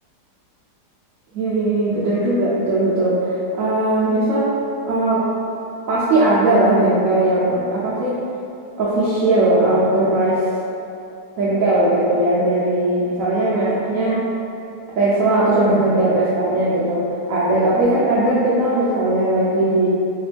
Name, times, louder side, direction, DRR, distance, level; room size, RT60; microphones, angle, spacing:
voice 1, 1.3-4.6 4.9-5.3 5.9-8.2 8.8-10.5 11.4-14.2 15.0-19.9, right 2 dB, 65° right, -8 dB, 0.8 m, -18 dB
3.2 x 2.9 x 3.3 m, 2.6 s
omnidirectional pair, 1.9 m